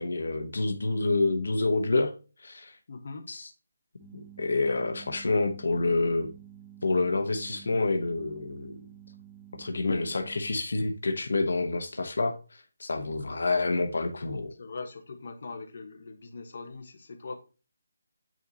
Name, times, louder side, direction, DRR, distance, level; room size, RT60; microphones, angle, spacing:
voice 1, 0.0-2.1 2.4-2.8 3.3-3.5 4.1-6.3 6.8-8.8 9.6-14.5, left 3 dB, 70° left, 1.0 m, -28 dB
voice 2, 2.9-3.3 14.6-17.4, left 4 dB, 45° left, 1.2 m, -41 dB
sound 1, 4.0-10.6, right 10 dB, ahead, 1.2 m, -50 dB
9.0 x 4.0 x 2.8 m
hypercardioid pair, 175°, 0 cm